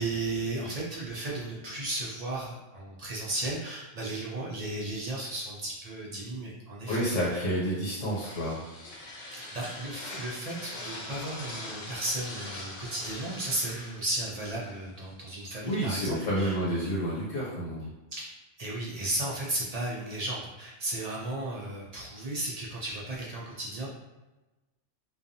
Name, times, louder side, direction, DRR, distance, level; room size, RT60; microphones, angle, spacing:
voice 1, 0.0-7.0 7.3-7.5 9.3-16.6 18.1-18.3 18.6-23.9, right 2 dB, 55° right, -4 dB, 0.4 m, -34 dB
voice 2, 6.9-8.7 15.6-17.9, equal, 80° left, -6 dB, 1.2 m, -29 dB
sound 1, 7.6-15.1, left 1 dB, 50° left, 0.6 m, -43 dB
2.5 x 2.3 x 2.6 m, 1.1 s
omnidirectional pair, 1.2 m